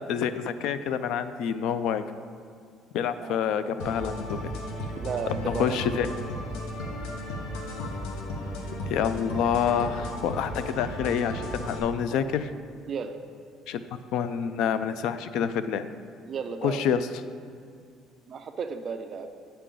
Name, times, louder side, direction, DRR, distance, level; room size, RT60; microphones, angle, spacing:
voice 1, 0.0-2.0 2.9-4.4 5.4-6.1 8.9-12.5 13.7-13.8 14.1-15.9 16.6-17.0, left 8 dB, 65° left, 12 dB, 0.3 m, -27 dB
sound 1, 3.8-11.8, left 1 dB, 85° left, 0.9 m, -35 dB
voice 2, 5.0-5.8 12.9-13.2 16.3-16.8 18.3-19.3, right 5 dB, 30° right, 7 dB, 0.3 m, -33 dB
8.5 x 5.6 x 3.8 m, 2.2 s
cardioid pair, 175°, 0 cm